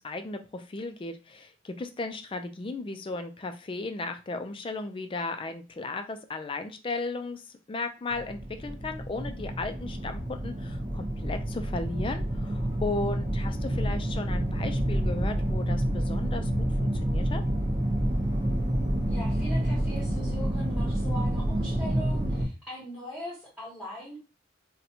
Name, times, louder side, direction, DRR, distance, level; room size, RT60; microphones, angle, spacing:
voice 1, 0.0-17.4, left 3 dB, 25° left, 8 dB, 0.3 m, -35 dB
sound 1, 8.1-22.5, right 1 dB, 25° right, 0.7 m, -28 dB
voice 2, 19.1-24.2, equal, 5° right, -7 dB, 1.1 m, -40 dB
4.0 x 2.2 x 2.8 m, 0.31 s
head